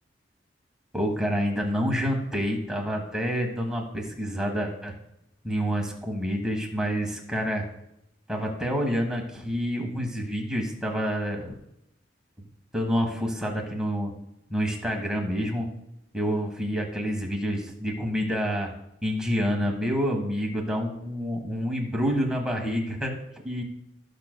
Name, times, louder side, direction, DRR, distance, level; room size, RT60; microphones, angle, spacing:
voice 1, 0.9-4.9 5.4-7.7 8.3-11.5 12.7-14.1 14.5-15.7 16.1-18.7 19.0-23.1 23.4-23.6, equal, 5° right, 0 dB, 1.3 m, -28 dB
19.0 x 6.6 x 2.2 m, 0.82 s
head